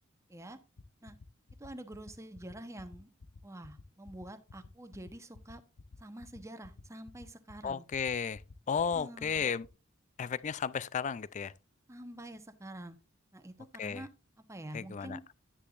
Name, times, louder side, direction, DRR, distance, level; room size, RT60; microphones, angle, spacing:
sound 1, 0.8-9.7, left 3 dB, 70° left, 0.7 m, -52 dB
voice 1, 1.6-3.1 3.4-5.6 6.0-7.8 8.9-9.5 11.9-13.0 13.3-13.5 13.8-14.1 14.4-15.2, right 1 dB, 15° right, 0.9 m, -47 dB
voice 2, 7.6-8.4 8.7-9.7 10.2-11.5 13.8-14.0 14.7-15.2, left 6 dB, 35° left, 0.3 m, -33 dB
10.0 x 9.8 x 2.4 m
head